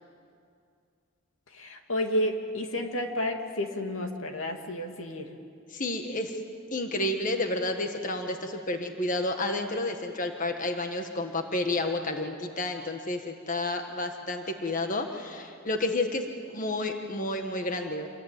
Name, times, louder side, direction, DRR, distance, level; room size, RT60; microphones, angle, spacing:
voice 1, 1.5-5.3, left 1 dB, 90° left, 4 dB, 2.5 m, -31 dB
voice 2, 5.7-6.3 6.7-18.1, left 2 dB, 40° left, 5 dB, 1.6 m, -30 dB
27.5 x 23.0 x 9.1 m, 2.3 s
head